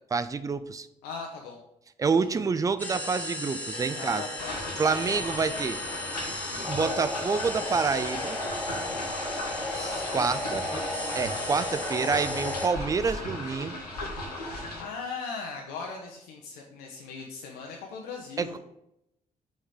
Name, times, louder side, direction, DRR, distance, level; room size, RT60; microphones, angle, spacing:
voice 1, 0.1-0.9 2.0-4.2 4.8-5.8 6.7-8.4 9.7-10.8 11.2-13.8 18.4-18.6, right 5 dB, 20° right, 13 dB, 0.4 m, -28 dB
voice 2, 1.0-1.6 2.1-2.4 3.9-5.3 13.0-13.2 14.6-18.6, left 5 dB, 65° left, 0 dB, 0.6 m, -39 dB
sound 1, 2.8-12.7, left 2 dB, 10° left, 1.6 m, -34 dB
sound 2, 4.4-14.8, left 1 dB, 85° left, 0.9 m, -37 dB
6.2 x 3.1 x 5.0 m, 0.84 s
figure-of-eight pair, 40°, 19 cm